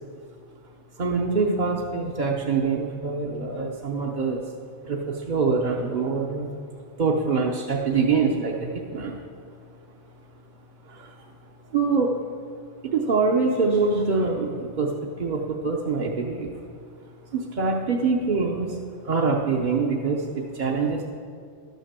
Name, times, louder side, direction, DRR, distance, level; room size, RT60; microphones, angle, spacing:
voice 1, 1.0-4.4 4.8-6.5 7.0-9.2 10.9-11.1 11.7-12.2 12.8-16.5 17.3-18.8 19.0-21.1, right 4 dB, 45° right, -2 dB, 0.8 m, -24 dB
12.0 x 6.5 x 6.7 m, 2.2 s
omnidirectional pair, 1.2 m